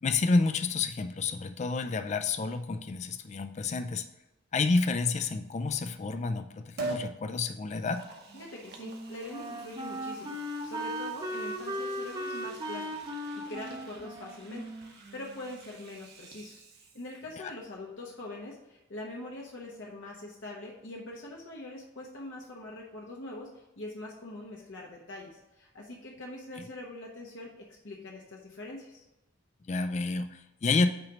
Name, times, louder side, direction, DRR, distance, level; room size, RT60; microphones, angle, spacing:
voice 1, 0.0-4.0 4.5-8.1 17.4-17.5 26.6-26.7 29.7-30.9, left 3 dB, 35° left, 9 dB, 0.3 m, -29 dB
Liquid, 6.8-7.1 7.7-17.3 17.7-17.8, right 2 dB, 55° right, 1.0 m, -45 dB
voice 2, 8.3-10.4 10.6-29.0, left 2 dB, 70° left, -2 dB, 1.0 m, -43 dB
Wind instrument woodwind instrument, 8.3-15.6, equal, 20° right, 0.7 m, -38 dB
8.8 x 3.0 x 5.0 m, 0.97 s
head